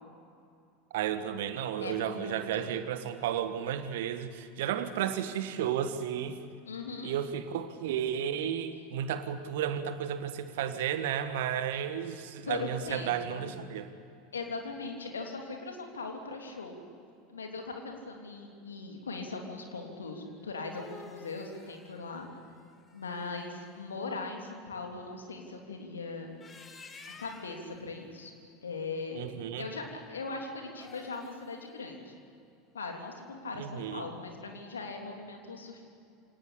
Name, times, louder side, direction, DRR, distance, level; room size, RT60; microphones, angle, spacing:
voice 1, 0.9-6.4 7.0-13.9 29.1-29.7 33.6-34.1, right 9 dB, 60° right, 10 dB, 1.6 m, -33 dB
voice 2, 1.8-2.7 6.7-7.1 12.4-13.5 14.3-16.8 17.3-22.3 22.9-26.4 27.2-28.3 28.6-29.2 29.6-32.2 32.7-35.8, left 3 dB, 75° left, 2 dB, 3.3 m, -40 dB
sound 1, 20.4-23.5 26.2-27.7 30.7-31.6, left 4 dB, 25° left, 2.4 m, -52 dB
26.5 x 18.5 x 8.7 m, 2.5 s
figure-of-eight pair, 80°, 0 cm